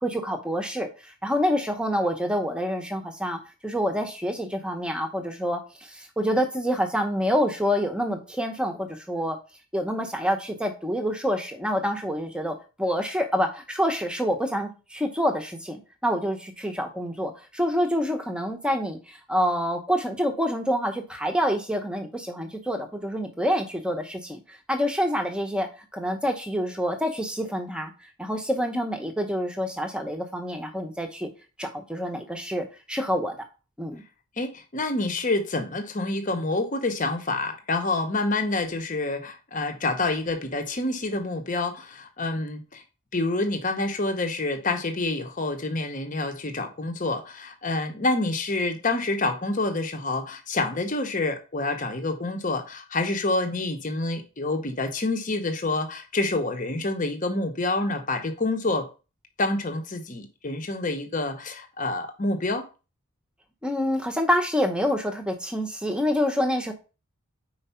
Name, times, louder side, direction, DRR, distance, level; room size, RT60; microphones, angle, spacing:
voice 1, 0.0-5.6 5.9-9.4 9.7-27.9 28.2-31.3 31.6-33.3 33.8-34.0 63.6-66.7, equal, 5° right, 0.9 m, -27 dB
voice 2, 34.4-42.8 43.1-58.9 59.4-62.6, left 2 dB, 35° left, 0.9 m, -27 dB
4.8 x 4.6 x 5.6 m
head